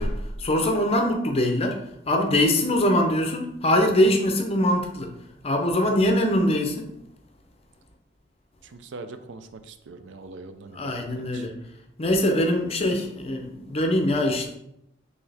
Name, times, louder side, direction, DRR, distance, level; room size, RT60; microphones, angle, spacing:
voice 1, 0.0-5.1 5.4-6.8 10.7-11.5 12.0-14.5, left 1 dB, 30° left, 3 dB, 0.6 m, -23 dB
voice 2, 8.6-11.5, right 3 dB, 70° right, 9 dB, 0.4 m, -42 dB
4.4 x 3.3 x 3.4 m, 0.80 s
head